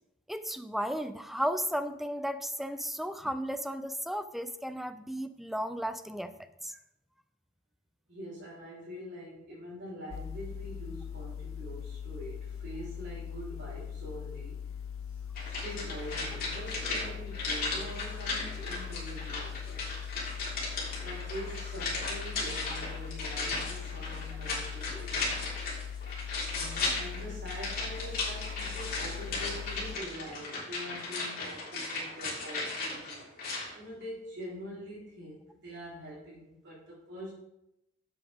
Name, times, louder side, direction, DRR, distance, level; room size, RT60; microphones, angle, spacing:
voice 1, 0.3-6.3 6.6-6.8, equal, ahead, 10 dB, 0.5 m, -34 dB
voice 2, 8.1-14.6 15.1-20.0 21.0-25.4 26.5-37.3, equal, 60° right, -8 dB, 4.1 m, -44 dB
sound 1, 10.1-30.0, left 8 dB, 85° left, 0.5 m, -41 dB
sound 2, 15.4-33.7 34.0-34.1, left 3 dB, 50° left, 3.6 m, -36 dB
12.0 x 7.9 x 3.6 m, 0.85 s
head